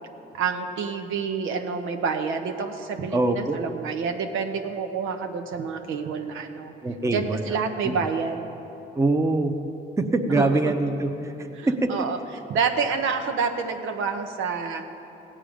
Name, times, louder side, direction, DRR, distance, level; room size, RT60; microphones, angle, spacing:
voice 1, 0.3-6.7 7.1-8.5 10.3-10.7 11.6-12.2 12.5-14.8, right 5 dB, 85° right, 5 dB, 0.9 m, -28 dB
voice 2, 3.1-3.6 6.8-7.6 7.8-7.9 8.9-9.5 10.0-11.9, right 2 dB, 15° right, 5 dB, 0.8 m, -24 dB
16.5 x 8.9 x 5.1 m, 3.0 s
cardioid pair, 90°, 20 cm